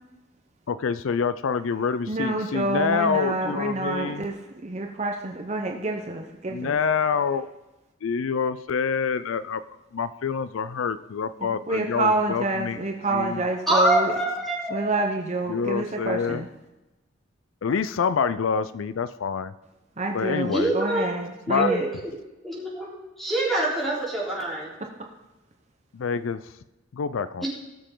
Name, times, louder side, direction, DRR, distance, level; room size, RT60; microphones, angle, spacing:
voice 1, 0.7-4.3 6.5-7.5 8.0-9.6 9.9-12.8 13.1-13.4 15.5-16.4 17.6-19.5 20.1-20.7 21.5-21.7 25.9-26.4 26.9-27.5, left 6 dB, 75° left, 14 dB, 0.4 m, -26 dB
voice 2, 2.1-6.7 11.4-14.2 14.7-16.5 20.0-21.9, right 2 dB, 35° right, 2 dB, 0.8 m, -28 dB
voice 3, 13.7-14.8 20.5-21.1 21.5-21.9 22.4-22.9 23.2-24.7 27.4-27.5, right 1 dB, ahead, -6 dB, 3.8 m, -25 dB
18.5 x 6.8 x 3.8 m, 1.0 s
head